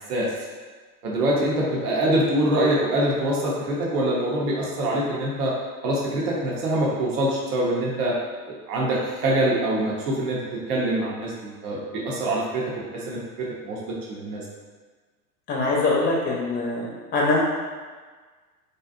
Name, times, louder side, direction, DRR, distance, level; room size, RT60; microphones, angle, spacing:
voice 1, 1.0-5.5 5.8-8.1 8.5-10.4 10.7-12.6 12.9-13.8 14.1-14.4, right 1 dB, 80° right, -4 dB, 0.7 m, -24 dB
voice 2, 15.5-16.9 17.1-17.4, left 2 dB, 20° left, -3 dB, 0.5 m, -22 dB
2.5 x 2.1 x 2.4 m, 1.4 s
hypercardioid pair, 90°, 46 cm